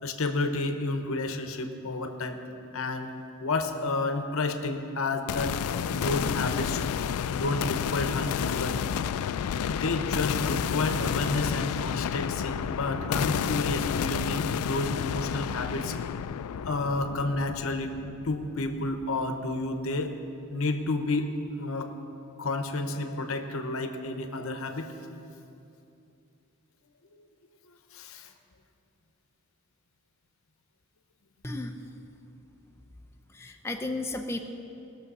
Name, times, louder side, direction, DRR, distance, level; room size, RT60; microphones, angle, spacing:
voice 1, 0.0-2.4 2.7-3.1 3.4-5.6 5.9-6.8 7.3-8.8 9.7-15.9 16.6-17.9 18.2-20.1 20.5-21.9 22.4-24.9 27.9-28.3, left 2 dB, 70° left, 6 dB, 0.9 m, -30 dB
sound 1, 5.3-19.2, left 8 dB, 85° left, 0.3 m, -30 dB
voice 2, 31.4-32.1 33.3-34.4, left 2 dB, 10° left, 2 dB, 0.6 m, -34 dB
19.0 x 6.6 x 5.5 m, 2.8 s
head